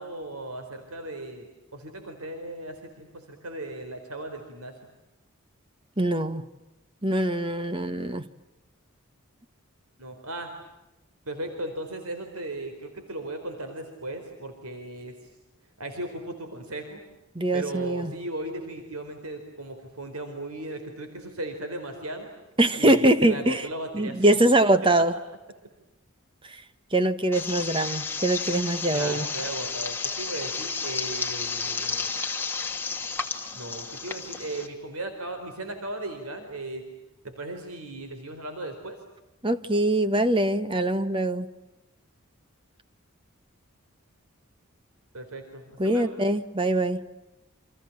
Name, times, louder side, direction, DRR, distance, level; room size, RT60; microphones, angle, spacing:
voice 1, 0.0-4.7 10.0-10.5 11.3-15.1 15.8-17.0 17.5-22.3 22.8-24.2 24.6-24.7 28.9-32.1 33.5-36.8 37.2-39.0 45.1-46.2, right 2 dB, 85° right, 6 dB, 4.4 m, -37 dB
voice 2, 6.0-6.5 7.0-8.3 17.3-18.1 22.6-23.7 23.9-25.1 26.5-26.6 26.9-29.3 39.4-41.5 45.8-47.0, right 1 dB, 25° right, 11 dB, 1.3 m, -23 dB
sound 1, 27.3-34.7, left 4 dB, 10° left, 2.4 m, -32 dB
29.5 x 27.0 x 7.4 m, 0.96 s
head